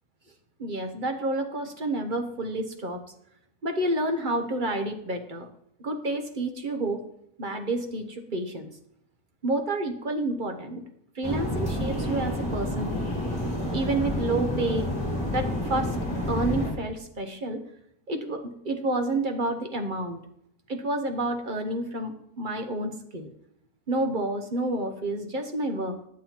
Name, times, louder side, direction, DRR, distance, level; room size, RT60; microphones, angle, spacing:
voice 1, 0.6-3.0 3.6-5.5 5.8-7.0 7.4-8.7 9.4-10.8 11.1-13.1 13.7-14.9 15.2-16.0 16.3-17.6 18.1-20.2 20.7-23.3 23.9-26.0, right 2 dB, 40° right, 5 dB, 1.0 m, -29 dB
sound 1, 11.2-16.7, left 1 dB, 20° left, 2.4 m, -29 dB
9.8 x 7.6 x 4.4 m, 0.74 s
omnidirectional pair, 1.6 m